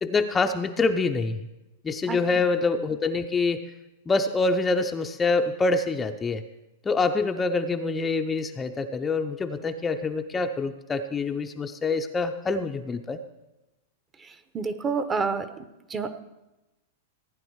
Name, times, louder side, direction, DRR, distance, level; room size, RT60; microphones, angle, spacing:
voice 1, 0.0-1.4 1.8-3.6 4.1-6.4 6.9-13.2, left 3 dB, 15° left, 5 dB, 0.6 m, -26 dB
voice 2, 14.2-15.6 15.9-16.2, right 4 dB, 20° right, 11 dB, 0.9 m, -29 dB
16.0 x 9.4 x 4.7 m, 0.99 s
hypercardioid pair, 135°, 0 cm